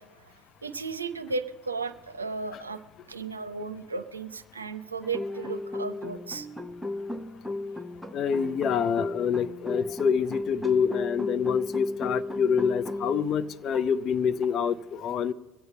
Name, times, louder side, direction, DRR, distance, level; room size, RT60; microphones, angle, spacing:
voice 1, 0.0-2.8 3.1-6.5, right 4 dB, 90° right, 10 dB, 0.6 m, -35 dB
sound 1, 5.0-13.3 13.7-13.9 14.4-14.5, left 2 dB, 5° left, 0.9 m, -34 dB
voice 2, 8.1-15.3, left 7 dB, 45° left, 14 dB, 0.6 m, -26 dB
22.0 x 8.0 x 5.5 m, 1.2 s
figure-of-eight pair, 65°, 0 cm